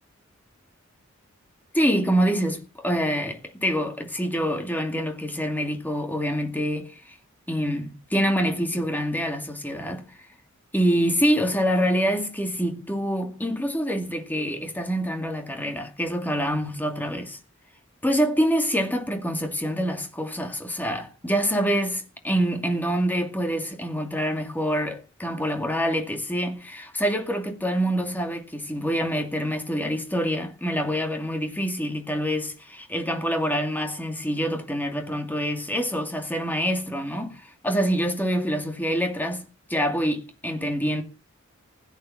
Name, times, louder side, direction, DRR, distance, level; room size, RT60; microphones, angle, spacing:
voice 1, 1.7-7.1 7.5-10.1 10.7-17.4 18.0-41.0, equal, 10° left, 2.3 m, -26 dB
16.0 x 9.2 x 7.1 m
head